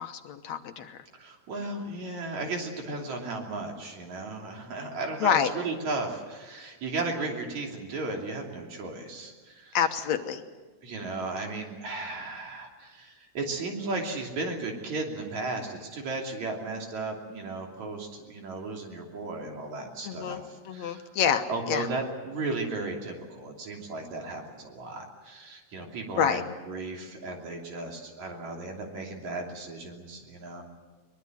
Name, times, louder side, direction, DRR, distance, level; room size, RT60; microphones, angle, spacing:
voice 1, 0.0-1.0 5.2-5.5 9.7-10.4 20.1-21.9 26.2-26.4, left 8 dB, 70° left, 7 dB, 2.2 m, -27 dB
voice 2, 1.1-9.8 10.8-21.0 21.5-30.6, right 3 dB, 70° right, 1 dB, 4.3 m, -35 dB
22.5 x 21.0 x 8.0 m, 1.3 s
omnidirectional pair, 3.3 m